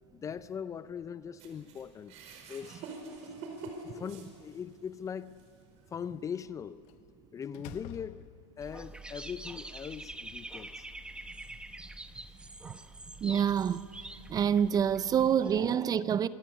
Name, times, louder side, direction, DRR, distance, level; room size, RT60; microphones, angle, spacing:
voice 1, 0.1-2.1 2.5-2.8 3.9-5.5 5.9-6.8 7.3-8.3 8.6-10.9, left 7 dB, 20° left, 0.5 m, -40 dB
sound 1, 1.4-4.8 5.4-5.5 6.4-6.5, right 3 dB, 50° right, 5.1 m, -45 dB
Slam, 3.7-4.7 6.9-7.1 7.5-8.8, left 14 dB, 50° left, 1.0 m, -50 dB
Dog / Bird, 8.6-15.6, right 2 dB, 5° right, 0.9 m, -45 dB
voice 2, 13.2-13.8 14.3-16.3, right 8 dB, 25° right, 0.6 m, -27 dB
27.0 x 21.0 x 8.4 m
supercardioid pair, 125°, 15 cm